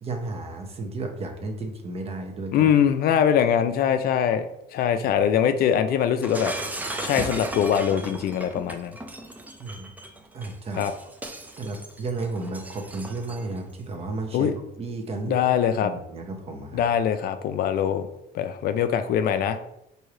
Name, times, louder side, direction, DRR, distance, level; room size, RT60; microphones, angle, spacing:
voice 1, 0.0-2.8 9.6-9.9 10.3-10.9 11.6-15.4 15.8-16.8, right 3 dB, 35° right, 3 dB, 0.8 m, -33 dB
voice 2, 2.5-4.5 4.7-6.5 7.0-8.9 10.8-10.9 14.3-14.5 15.3-15.9 16.7-18.1 18.3-19.6, left 9 dB, 65° left, 10 dB, 0.4 m, -22 dB
Shatter, 6.2-13.6, right 2 dB, 10° right, 0.4 m, -36 dB
4.7 x 2.7 x 3.1 m, 0.84 s
cardioid pair, 110°, 17 cm